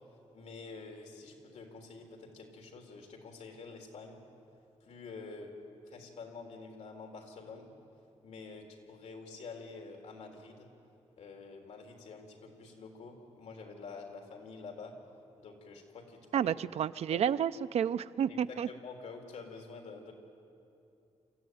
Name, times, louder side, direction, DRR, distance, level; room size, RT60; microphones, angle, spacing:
voice 1, 0.3-4.2 4.8-5.5 5.8-7.7 8.2-10.7 11.2-15.0 15.4-16.5 17.1-17.2 18.3-20.1, left 4 dB, 80° left, 2 dB, 3.6 m, -48 dB
voice 2, 16.3-18.7, right 8 dB, 65° right, 13 dB, 0.5 m, -30 dB
27.5 x 14.5 x 9.4 m, 2.7 s
wide cardioid pair, 180°, 12 cm